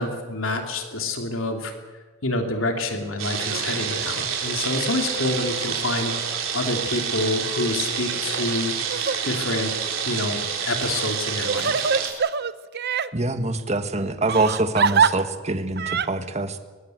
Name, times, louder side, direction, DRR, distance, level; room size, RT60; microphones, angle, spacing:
voice 1, 0.0-1.7 2.2-6.1 6.5-8.7 9.2-9.7 10.1-11.9, left 2 dB, 85° left, 4 dB, 3.0 m, -27 dB
sound 1, 3.2-12.1, right 7 dB, 85° right, 4.1 m, -28 dB
Crying sobbing, 8.8-9.2 9.8-9.9 10.9-13.1 14.3-15.1 15.8-16.1, right 6 dB, 55° right, 0.8 m, -23 dB
voice 2, 13.1-16.6, right 2 dB, 35° right, 8 dB, 1.7 m, -25 dB
22.5 x 21.5 x 7.9 m, 1.3 s
head